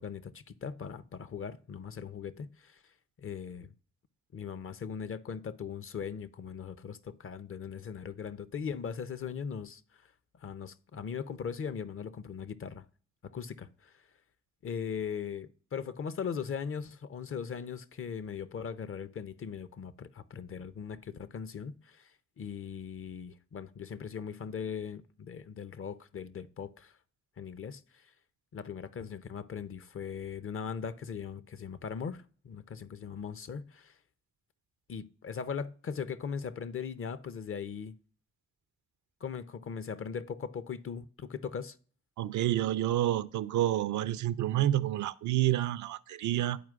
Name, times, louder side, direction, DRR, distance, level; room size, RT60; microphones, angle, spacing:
voice 1, 0.0-2.8 3.2-3.7 4.3-10.0 10.4-12.8 13.2-13.9 14.6-22.1 22.4-26.9 27.4-28.1 28.5-33.9 34.9-38.0 39.2-41.8, left 6 dB, 45° left, 0.6 m, -39 dB
voice 2, 42.2-46.6, right 13 dB, 70° right, 0.5 m, -29 dB
11.0 x 4.4 x 2.4 m
supercardioid pair, 40°, 30 cm